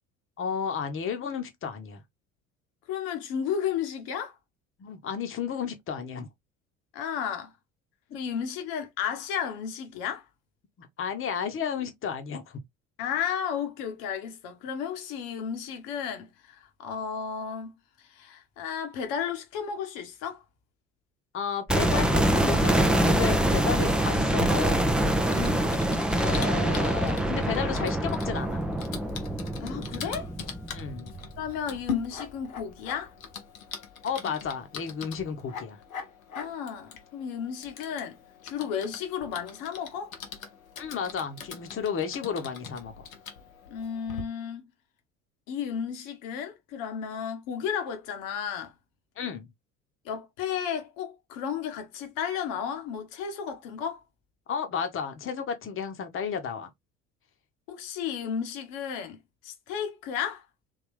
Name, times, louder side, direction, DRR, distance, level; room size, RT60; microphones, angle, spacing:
voice 1, 0.4-2.0 4.8-6.3 8.1-8.2 10.8-12.6 21.3-24.9 26.2-28.6 30.7-31.1 34.0-35.8 40.8-43.1 49.2-49.5 54.5-56.7, left 7 dB, 30° left, 1.0 m, -33 dB
voice 2, 2.9-4.3 6.9-7.5 8.1-10.3 13.0-20.4 25.3-25.8 29.6-30.3 31.4-33.1 36.3-40.1 43.7-44.7 45.5-48.7 50.0-54.0 57.7-60.4, left 8 dB, 55° left, 1.2 m, -33 dB
sound 1, 21.7-31.7 32.0-32.1, right 1 dB, ahead, 0.4 m, -25 dB
Typing, 24.4-44.2, left 6 dB, 80° left, 0.8 m, -41 dB
3.7 x 2.8 x 3.2 m
figure-of-eight pair, 60°, 40 cm